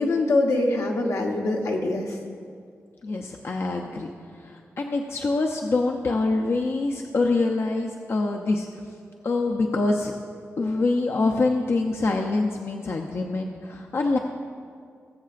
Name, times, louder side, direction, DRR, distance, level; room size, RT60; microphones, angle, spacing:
voice 1, 0.0-2.2, left 2 dB, 80° left, 1 dB, 1.1 m, -24 dB
voice 2, 3.0-4.1 4.4-8.7 9.2-10.1 10.6-14.2, left 3 dB, 55° left, 1 dB, 0.6 m, -25 dB
19.5 x 7.4 x 2.5 m, 2.2 s
wide cardioid pair, 95°, 5 cm